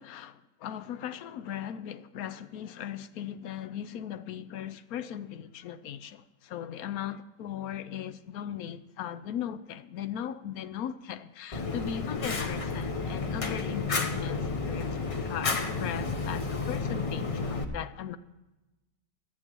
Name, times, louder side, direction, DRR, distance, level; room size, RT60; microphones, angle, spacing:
voice 1, 0.0-15.0 15.3-18.2, left 10 dB, 70° left, 1.0 m, -38 dB
Fire, 11.5-17.6, left 4 dB, 40° left, 0.4 m, -31 dB
19.0 x 13.5 x 3.0 m
omnidirectional pair, 1.8 m